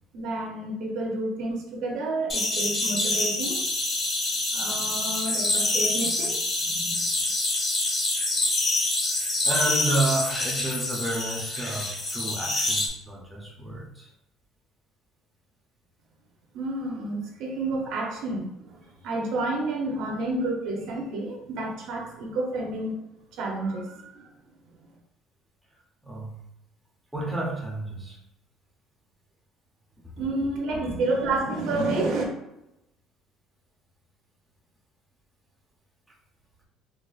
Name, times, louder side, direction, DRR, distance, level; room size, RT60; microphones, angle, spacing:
voice 1, 0.1-3.6 4.5-7.0 16.5-23.0 23.3-24.3 30.2-32.2, right 2 dB, 60° right, 1 dB, 0.6 m, -30 dB
sound 1, 2.3-12.9, left 2 dB, 25° left, 0.8 m, -26 dB
voice 2, 9.4-14.1 26.0-26.4 27.1-28.2 30.7-31.0, right 2 dB, ahead, -4 dB, 0.5 m, -30 dB
3.9 x 2.3 x 2.3 m, 0.85 s
cardioid pair, 175°, 0 cm